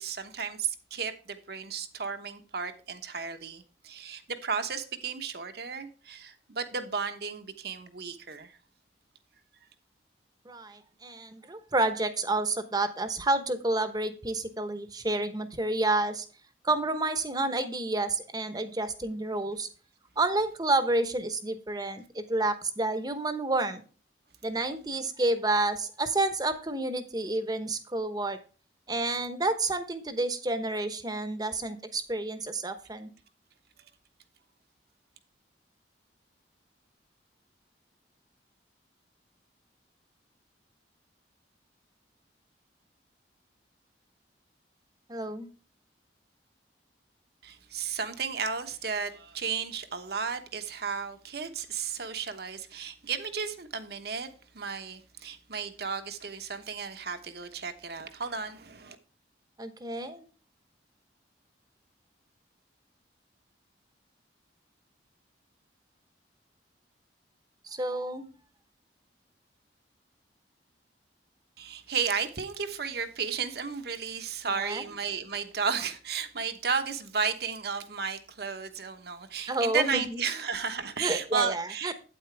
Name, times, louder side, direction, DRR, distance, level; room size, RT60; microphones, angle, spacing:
voice 1, 0.0-8.6 47.4-59.0 71.6-81.9, right 6 dB, 60° right, 1.1 m, -33 dB
voice 2, 10.4-16.3 16.6-19.7 20.2-23.8 24.4-28.4 28.9-33.1 45.1-45.5 59.6-60.2 67.6-68.3 74.5-74.8 79.5-80.2 81.0-81.9, right 2 dB, 20° right, 0.9 m, -29 dB
8.7 x 8.7 x 3.3 m
head